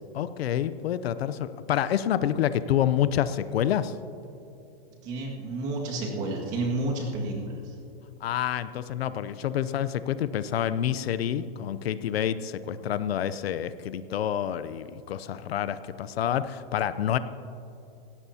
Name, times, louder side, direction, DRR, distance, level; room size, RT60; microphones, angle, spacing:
voice 1, 0.1-3.9 8.2-17.2, left 10 dB, 80° left, 14 dB, 0.7 m, -28 dB
voice 2, 5.0-7.7, right 2 dB, 25° right, -1 dB, 2.0 m, -30 dB
18.5 x 17.0 x 2.8 m, 2.8 s
supercardioid pair, 175°, 30 cm